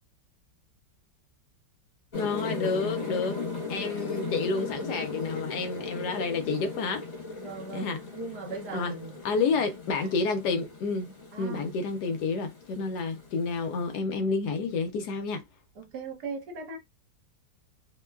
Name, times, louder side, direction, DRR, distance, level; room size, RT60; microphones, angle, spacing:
voice 1, 2.1-3.4 3.7-7.0 7.7-8.0 8.7-8.9 9.2-15.4, left 4 dB, 70° left, 1.1 m, -29 dB
sound 1, 2.1-14.0, left 3 dB, 40° left, 1.3 m, -37 dB
voice 2, 7.4-7.9 8.1-9.2 11.3-11.7 15.8-16.8, right 4 dB, 65° right, 1.4 m, -38 dB
3.0 x 2.2 x 2.2 m
omnidirectional pair, 1.9 m